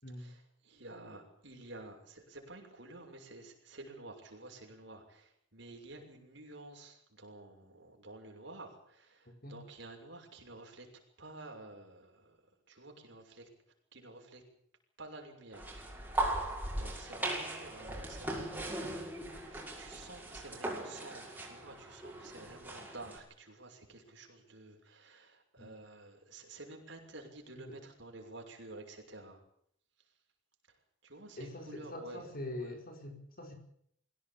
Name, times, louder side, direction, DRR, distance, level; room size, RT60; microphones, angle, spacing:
voice 1, 0.2-10.9 11.2-12.4 12.7-13.5 13.9-14.4 15.0-15.7 16.1-19.2 19.5-29.4 31.0-32.2 32.5-32.8, right 2 dB, 60° right, 2 dB, 6.4 m, -51 dB
sound 1, 15.5-23.2, right 1 dB, 10° right, 5.9 m, -39 dB
voice 2, 31.4-33.5, left 1 dB, 45° left, 4 dB, 5.3 m, -44 dB
23.5 x 17.0 x 8.9 m, 0.67 s
head